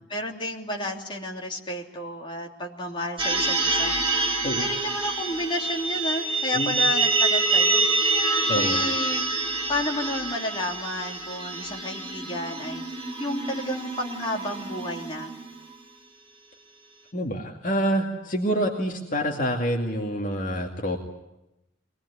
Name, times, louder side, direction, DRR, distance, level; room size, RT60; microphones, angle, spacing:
voice 1, 0.1-7.9 8.5-9.2 9.7-12.8 13.2-15.3, left 1 dB, 25° left, 0 dB, 3.0 m, -31 dB
sound 1, 3.2-15.7, right 3 dB, 30° right, 5.4 m, -26 dB
voice 2, 8.5-8.8 17.1-21.0, equal, 45° left, 1 dB, 2.3 m, -27 dB
23.5 x 20.0 x 9.9 m, 0.92 s
head